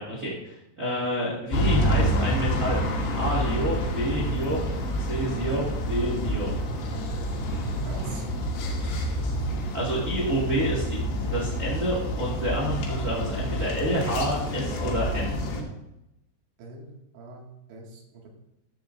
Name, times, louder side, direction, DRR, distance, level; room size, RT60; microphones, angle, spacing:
voice 1, 0.0-2.9 3.1-4.6 5.0-6.6 9.7-11.0 11.3-15.4, equal, 40° right, -4 dB, 1.1 m, -29 dB
sound 1, 1.5-15.6, equal, 85° left, 4.3 m, -28 dB
voice 2, 7.9-8.2 16.6-18.3, right 3 dB, 80° right, -1 dB, 4.4 m, -44 dB
14.0 x 12.0 x 2.6 m, 0.87 s
omnidirectional pair, 5.3 m